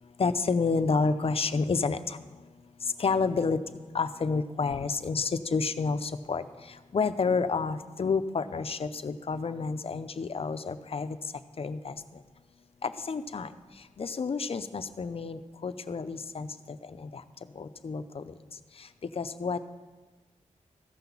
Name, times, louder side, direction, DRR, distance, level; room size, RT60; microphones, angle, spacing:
voice 1, 0.2-2.2 3.0-3.6 3.9-6.4 6.9-11.2 11.6-12.0 12.8-13.5 14.0-17.2 17.6-18.3 19.2-19.6, left 4 dB, 50° left, 11 dB, 0.6 m, -29 dB
14.5 x 5.9 x 7.1 m, 1.3 s
wide cardioid pair, 90°, 13 cm